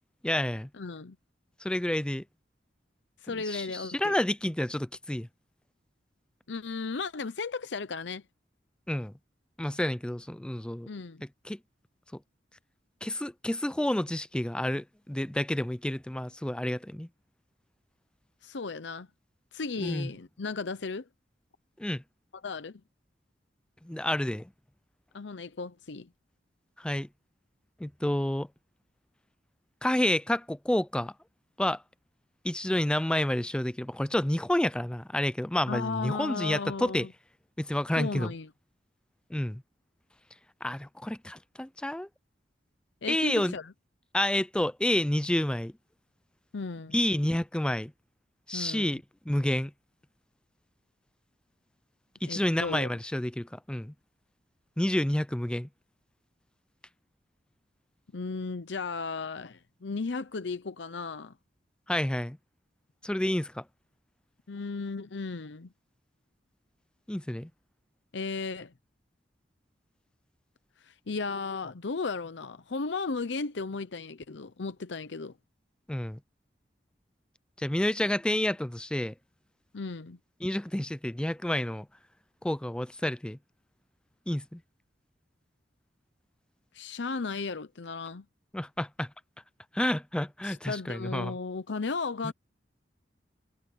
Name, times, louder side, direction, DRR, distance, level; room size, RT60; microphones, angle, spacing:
voice 1, 0.2-0.7 1.6-2.2 3.5-5.3 8.9-9.1 9.6-10.9 11.4-11.6 13.0-17.1 19.8-20.1 21.8-22.0 23.8-24.5 26.8-27.1 27.8-28.5 29.8-31.1 31.6-31.8 32.4-37.1 37.6-38.3 39.3-39.6 40.6-42.1 43.1-43.5 44.1-45.7 46.9-47.9 48.5-49.7 52.2-53.9 54.8-55.7 61.9-62.4 63.0-63.6 67.1-67.5 75.9-76.2 77.6-79.1 80.4-81.9 82.4-83.4 84.3-84.6 88.5-89.1 89.7-91.4 92.2-92.3, left 1 dB, 5° left, 0.4 m, -29 dB
voice 2, 0.8-1.2 3.2-4.1 6.5-8.2 10.9-11.2 18.4-19.1 19.5-21.0 22.4-22.8 25.1-26.1 35.7-37.1 38.0-38.5 43.0-43.7 46.5-47.0 48.5-49.0 52.3-52.9 58.1-61.3 64.5-65.7 68.1-68.7 70.8-75.3 79.7-80.2 86.7-88.2 90.4-92.3, left 4 dB, 80° left, 0.7 m, -35 dB
head